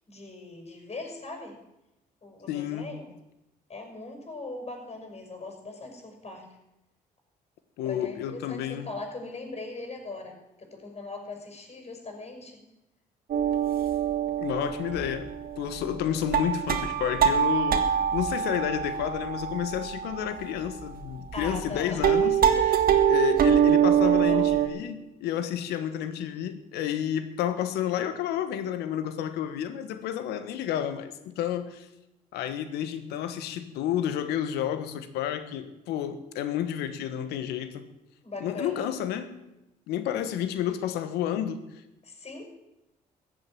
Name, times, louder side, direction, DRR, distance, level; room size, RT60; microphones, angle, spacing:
voice 1, 0.1-1.6 2.2-3.1 3.7-6.5 7.8-12.6 21.3-22.7 22.9-23.0 24.0-24.5 38.2-38.9 42.0-42.4, left 2 dB, 40° left, 4 dB, 6.1 m, -40 dB
voice 2, 2.5-2.9 7.8-8.9 14.4-15.3 15.6-22.3 23.1-31.9 32.3-37.8 38.4-39.3 39.9-41.6, left 10 dB, 90° left, 10 dB, 1.3 m, -30 dB
sound 1, 13.3-21.8 22.0-24.7, right 9 dB, 60° right, 1.7 m, -24 dB
14.5 x 8.0 x 9.3 m, 0.92 s
supercardioid pair, 65°, 17 cm